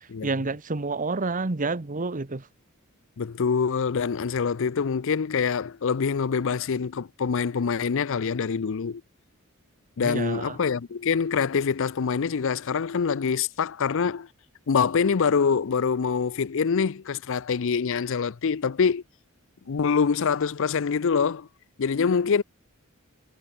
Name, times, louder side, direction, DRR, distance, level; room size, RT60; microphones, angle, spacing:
voice 1, 0.2-2.4 10.0-10.6, right 3 dB, 40° right, 1.0 m, -29 dB
voice 2, 3.2-9.0 10.0-14.3 14.7-19.0 19.7-21.5 21.8-22.4, left 6 dB, 65° left, 0.5 m, -25 dB
head